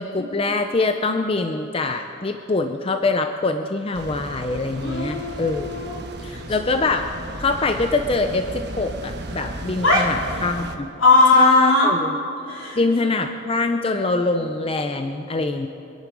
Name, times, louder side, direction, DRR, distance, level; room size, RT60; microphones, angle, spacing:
voice 1, 0.0-5.7 6.2-7.1 7.4-10.9 11.3-12.1 12.8-15.7, left 3 dB, 30° left, 6 dB, 0.5 m, -24 dB
sound 1, 3.9-10.8, right 1 dB, 55° right, 1.2 m, -35 dB
voice 2, 4.8-6.4 9.8-10.1 11.0-11.9 12.5-12.8, left 3 dB, 75° left, -4 dB, 4.1 m, -19 dB
26.0 x 10.5 x 4.8 m, 2.9 s
head